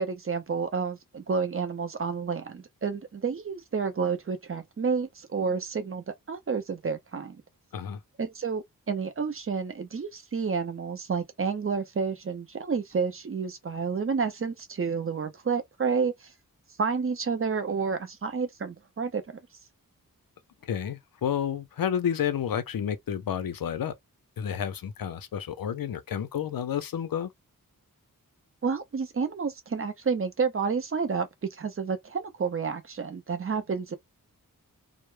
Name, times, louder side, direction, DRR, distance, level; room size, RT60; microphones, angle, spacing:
voice 1, 0.0-7.4 8.2-16.3 16.8-19.4 28.6-33.9, right 5 dB, 40° right, 0.5 m, -30 dB
voice 2, 20.6-23.9 24.4-27.3, left 9 dB, 75° left, 0.5 m, -30 dB
2.0 x 2.0 x 3.0 m
wide cardioid pair, 105°, 35 cm